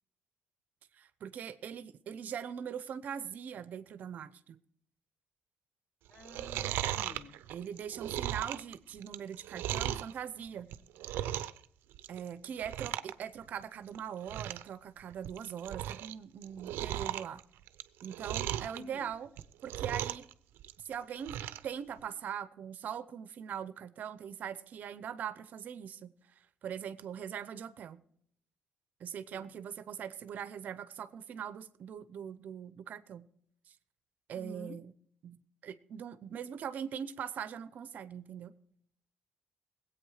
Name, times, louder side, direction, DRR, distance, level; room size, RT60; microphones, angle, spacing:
voice 1, 0.9-4.6 7.5-10.7 12.1-17.4 18.0-19.3 19.6-20.3 20.9-21.4 21.6-26.1 26.6-28.0 29.0-33.3 33.7-33.8 34.3-34.9 35.2-38.5, right 8 dB, 50° right, 0.7 m, -41 dB
voice 2, 6.1-7.4 18.7-19.1 29.3-29.5 34.3-34.8, left 2 dB, 30° left, 0.7 m, -50 dB
Chewing mastication, 6.1-10.1 10.6-11.6 11.9-12.3 12.6-13.1 13.4-13.5 13.9-14.0 14.2-14.7 15.1-16.1 16.4-18.8 19.3-20.3 20.6-21.7 22.0-22.1, right 12 dB, 85° right, 0.6 m, -37 dB
19.5 x 8.6 x 4.9 m
cardioid pair, 150°, 3 cm